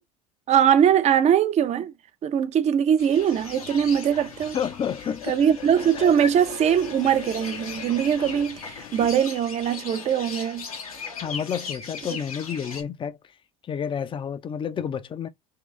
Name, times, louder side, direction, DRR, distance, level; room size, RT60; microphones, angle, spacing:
voice 1, 0.5-1.9 2.2-4.6 5.3-10.7, right 9 dB, 40° right, 0.7 m, -21 dB
sound 1, 3.0-12.8, left 5 dB, 85° left, 1.5 m, -39 dB
sound 2, 3.3-9.1, left 9 dB, 70° left, 1.0 m, -42 dB
voice 2, 4.5-5.4 6.0-6.1 11.2-13.2 13.6-15.3, left 8 dB, 30° left, 0.6 m, -30 dB
3.9 x 3.0 x 3.2 m
figure-of-eight pair, 70°, 18 cm